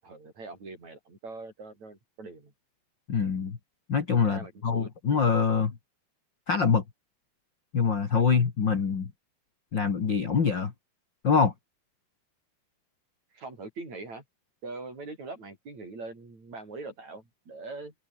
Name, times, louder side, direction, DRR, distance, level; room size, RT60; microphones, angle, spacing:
voice 1, 0.0-2.5 4.2-4.9 13.3-14.2 14.6-17.9, right 3 dB, 45° right, 8.7 m, -42 dB
voice 2, 3.1-3.6 3.9-5.8 6.5-6.8 7.7-9.1 9.7-10.7 11.2-11.5, left 5 dB, 40° left, 1.9 m, -24 dB
omnidirectional pair, 4.7 m